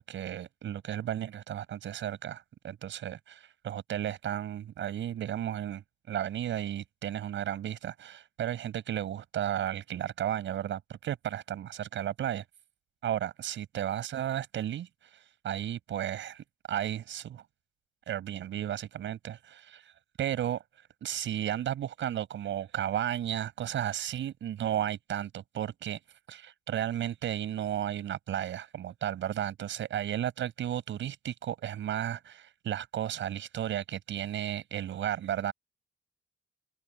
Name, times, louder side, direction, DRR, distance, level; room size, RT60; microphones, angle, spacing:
voice 1, 0.0-12.4 13.0-17.4 18.1-19.9 20.2-20.6 21.0-26.0 26.3-35.5, right 11 dB, 70° right, 7.0 m, -34 dB
cardioid pair, 90°, 20 cm